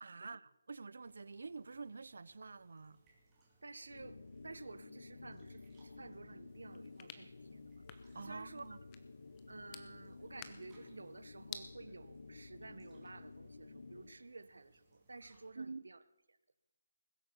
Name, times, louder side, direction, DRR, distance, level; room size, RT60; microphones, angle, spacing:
voice 1, 0.0-3.0 8.1-8.8 15.6-15.9, right 4 dB, 60° right, 0.5 m, -48 dB
sound 1, 1.0-15.5, right 2 dB, 10° right, 2.4 m, -72 dB
voice 2, 3.6-7.8 8.2-8.8 9.5-16.0, right 3 dB, 90° right, 1.0 m, -52 dB
sound 2, 3.8-14.2, left 3 dB, 70° left, 0.8 m, -54 dB
sound 3, 6.5-11.7, left 9 dB, 15° left, 0.6 m, -54 dB
20.0 x 8.2 x 7.0 m
hypercardioid pair, 175°, 0 cm